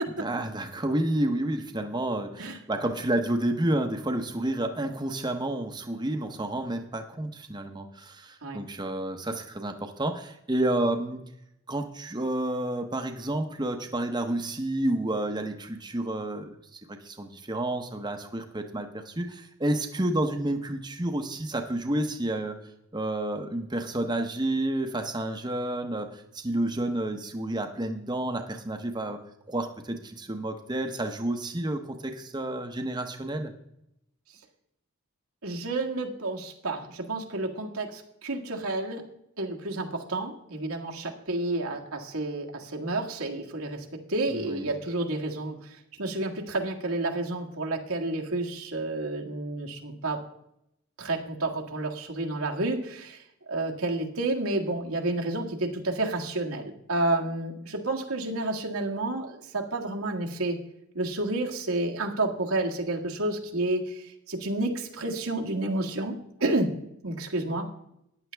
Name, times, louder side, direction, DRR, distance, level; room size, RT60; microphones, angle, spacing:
voice 1, 0.2-11.2 11.7-22.6 22.9-29.2 29.5-33.5 44.3-44.7, right 1 dB, 20° right, 4 dB, 0.8 m, -30 dB
voice 2, 35.4-39.0 39.4-50.2 51.0-53.2 53.5-60.6 60.9-66.7 67.0-67.7, right 2 dB, 85° right, 1 dB, 1.7 m, -30 dB
14.0 x 10.0 x 3.4 m, 0.79 s
head